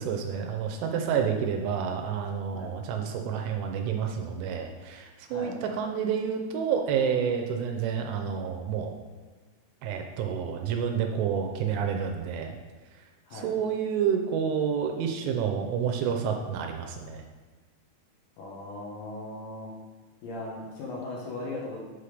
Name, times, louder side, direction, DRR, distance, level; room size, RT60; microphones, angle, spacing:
voice 1, 0.0-8.9 9.8-12.6 13.3-17.2, right 7 dB, 80° right, 3 dB, 2.9 m, -29 dB
voice 2, 18.4-19.7 20.2-21.8, left 2 dB, 70° left, -3 dB, 3.2 m, -38 dB
8.1 x 5.5 x 3.3 m, 1.3 s
omnidirectional pair, 5.7 m